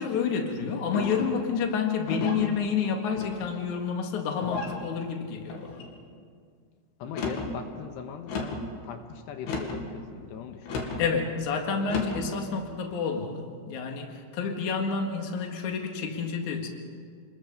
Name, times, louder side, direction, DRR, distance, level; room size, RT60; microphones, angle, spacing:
voice 1, 0.0-5.8 11.0-16.7, left 6 dB, 55° left, 3 dB, 3.0 m, -29 dB
sound 1, 0.9-1.4 2.1-2.5 3.2-3.7 4.4-4.8 5.5-5.9 7.0-7.5 8.3-8.7 9.4-9.9 10.7-11.0 11.8-12.2, left 3 dB, 70° left, 4.2 m, -33 dB
voice 2, 7.0-11.0, left 7 dB, 85° left, 6 dB, 3.3 m, -40 dB
29.0 x 21.0 x 5.5 m, 2.1 s
omnidirectional pair, 4.8 m